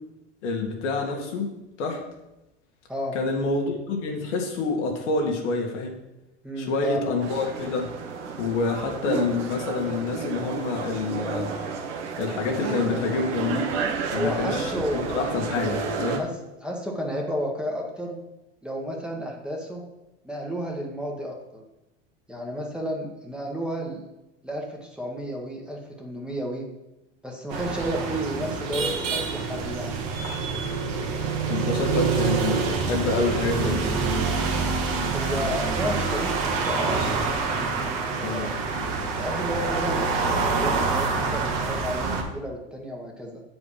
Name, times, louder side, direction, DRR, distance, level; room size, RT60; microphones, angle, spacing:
voice 1, 0.4-1.5 1.8-2.0 3.1-6.0 6.6-7.9 8.4-11.5 12.2-13.7 14.1-16.3 31.5-34.0 38.2-38.5, left 3 dB, 80° left, 1 dB, 1.9 m, -27 dB
voice 2, 6.4-7.0 14.1-15.2 16.2-16.3 16.6-18.2 18.6-19.8 20.2-21.6 22.3-24.0 24.4-26.7 27.2-30.0 35.0-37.0 37.7-38.6 39.2-40.1 40.5-43.4, equal, 5° right, -1 dB, 1.5 m, -32 dB
sound 1, 7.2-16.2, right 5 dB, 75° right, 1.4 m, -31 dB
sound 2, 27.5-42.2, right 4 dB, 50° right, 1.7 m, -26 dB
8.0 x 4.9 x 5.7 m, 0.94 s
hypercardioid pair, 110°, 36 cm